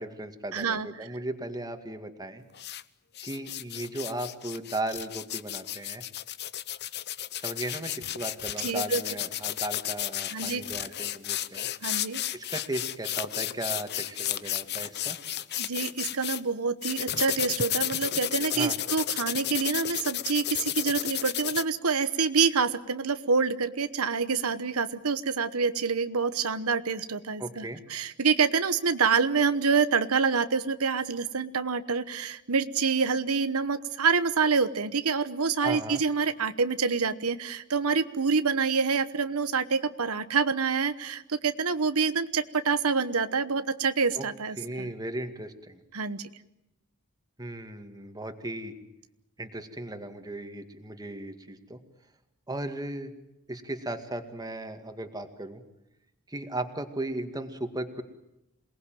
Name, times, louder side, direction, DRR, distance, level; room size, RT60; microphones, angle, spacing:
voice 1, 0.0-2.4 3.2-6.0 7.4-11.7 12.3-15.2 18.5-18.8 27.4-27.8 35.6-36.0 44.1-44.3 44.6-45.8 47.4-48.7 49.4-51.8 52.5-53.1 53.5-55.6 56.3-58.0, right 1 dB, 20° right, 7 dB, 2.1 m, -36 dB
voice 2, 0.5-1.1 8.6-9.0 10.3-10.6 11.8-12.2 15.6-44.9 45.9-46.2, right 5 dB, 90° right, 11 dB, 1.1 m, -27 dB
sound 1, 2.5-2.8 3.2-16.4 16.8-21.6, left 12 dB, 50° left, 0.8 m, -33 dB
27.5 x 19.0 x 9.2 m, 0.91 s
head